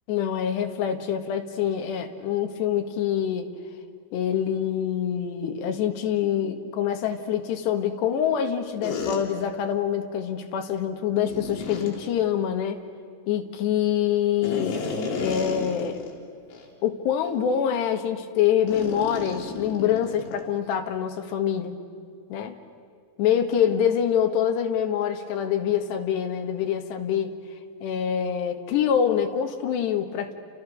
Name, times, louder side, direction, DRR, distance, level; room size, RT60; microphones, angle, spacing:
voice 1, 0.1-3.5 4.1-12.8 13.3-14.8 15.2-16.0 16.8-21.8 22.3-22.6 23.2-27.4 27.8-30.3, left 9 dB, 75° left, 5 dB, 3.8 m, -25 dB
sound 1, 8.8-9.2 11.3-12.0 14.4-16.1 16.5-16.7 17.2-17.4 18.7-20.5, left 4 dB, 90° left, 5.8 m, -32 dB
30.0 x 29.0 x 6.7 m, 2.2 s
omnidirectional pair, 5.2 m